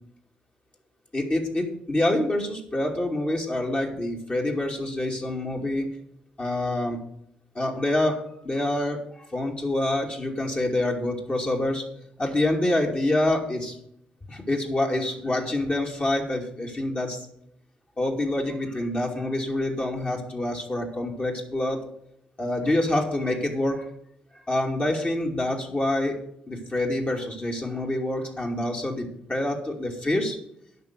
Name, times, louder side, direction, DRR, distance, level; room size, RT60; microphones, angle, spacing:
voice 1, 1.1-5.9 6.4-7.0 7.5-8.2 8.4-11.8 12.2-13.7 14.3-17.2 18.0-21.8 22.4-23.9 24.5-26.2 26.5-30.4, left 1 dB, 30° left, 0 dB, 2.6 m, -26 dB
9.1 x 5.8 x 7.9 m, 0.74 s
hypercardioid pair, 45°, 4 cm